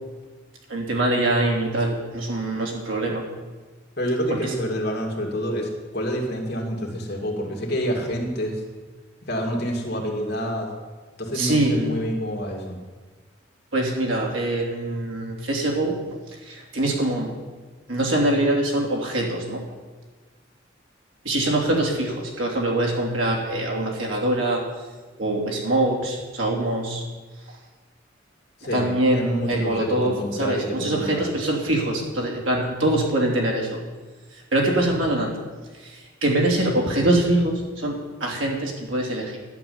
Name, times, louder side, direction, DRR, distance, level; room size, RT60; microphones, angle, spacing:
voice 1, 0.7-3.2 4.3-4.5 11.3-11.8 13.7-16.0 16.4-17.3 17.9-19.6 21.2-24.6 25.2-27.0 28.7-33.8 34.3-35.3 35.7-39.4, right 1 dB, 75° right, -1 dB, 3.1 m, -24 dB
voice 2, 4.0-8.6 9.3-10.7 11.2-12.8 28.6-31.3 31.9-32.0, equal, 50° left, 0 dB, 2.5 m, -28 dB
11.5 x 7.4 x 9.4 m, 1.4 s
head